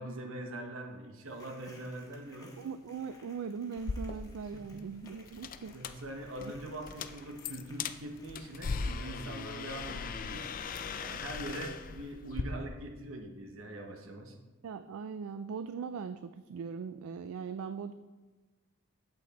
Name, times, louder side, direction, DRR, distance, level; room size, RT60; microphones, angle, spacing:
voice 1, 0.0-2.5 4.5-4.8 5.7-10.5 11.0-14.4, right 1 dB, 65° right, 4 dB, 1.0 m, -43 dB
sound 1, 1.2-9.4, left 2 dB, 20° left, 1.6 m, -61 dB
voice 2, 2.6-5.8 6.4-6.5 14.6-17.9, right 6 dB, 85° right, 11 dB, 0.3 m, -40 dB
sound 2, 3.8-12.4, left 5 dB, 40° left, 0.4 m, -39 dB
8.5 x 7.8 x 4.1 m, 1.2 s
head